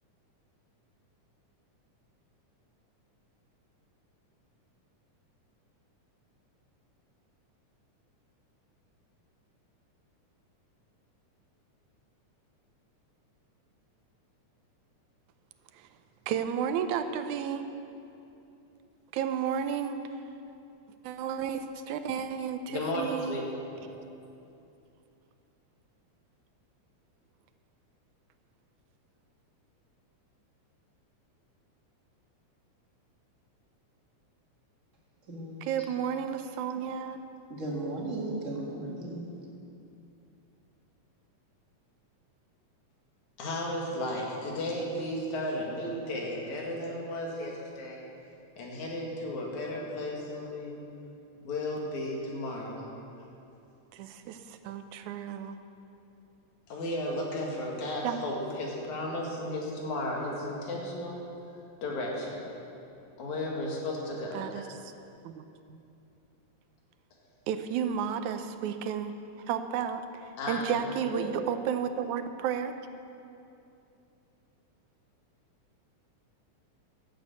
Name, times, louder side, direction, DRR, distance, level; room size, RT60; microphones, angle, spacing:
voice 1, 16.3-17.6 19.1-20.0 21.0-23.4 35.6-37.2 53.9-55.6 58.0-58.2 64.3-64.9 65.2-65.8 67.5-69.2 69.5-72.7, right 8 dB, 80° right, 9 dB, 2.1 m, -32 dB
voice 2, 22.7-23.4 23.7-23.9 43.4-48.0 48.6-50.8 51.4-52.9 56.7-61.2 61.8-62.5 63.2-64.6 70.4-70.8 71.1-71.4, left 1 dB, 70° left, -2 dB, 3.3 m, -34 dB
voice 3, 35.3-35.7 37.5-39.3, right 2 dB, 30° right, -3 dB, 2.0 m, -35 dB
12.5 x 8.4 x 8.3 m, 2.8 s
omnidirectional pair, 3.5 m